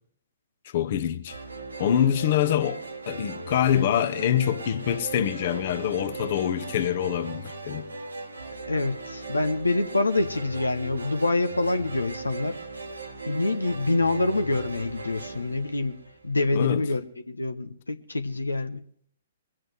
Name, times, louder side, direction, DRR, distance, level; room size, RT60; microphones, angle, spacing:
voice 1, 0.7-1.4 1.8-7.8 16.5-16.8, left 10 dB, 50° left, 1.0 m, -25 dB
sound 1, 1.3-16.5, right 3 dB, 90° right, 1.8 m, -38 dB
voice 2, 8.7-12.6 13.3-16.0 16.2-17.0 17.3-18.8, left 2 dB, 90° left, 0.8 m, -26 dB
21.5 x 7.7 x 6.4 m
figure-of-eight pair, 120°, 0 cm